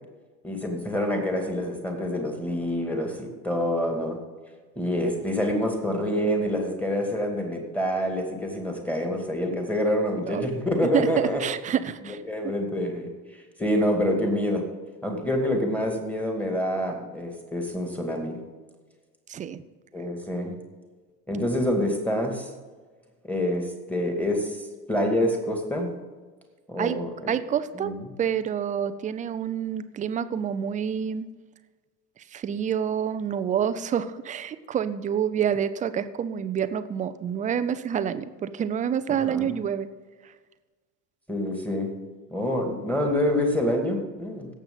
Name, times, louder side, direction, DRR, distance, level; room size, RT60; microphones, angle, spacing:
voice 1, 0.4-4.2 4.8-11.5 12.0-13.1 13.6-14.6 15.0-18.4 19.9-20.5 21.3-22.5 23.2-24.6 24.9-25.9 26.7-27.3 27.7-28.0 39.2-39.5 41.3-41.9 42.3-44.5, left 1 dB, 5° left, 2 dB, 2.4 m, -27 dB
voice 2, 10.8-12.2 19.3-19.6 26.8-27.0 27.3-27.9 28.2-31.3 32.3-39.9, right 8 dB, 15° right, 13 dB, 0.5 m, -27 dB
17.5 x 7.3 x 3.9 m, 1.4 s
figure-of-eight pair, 70°, 48 cm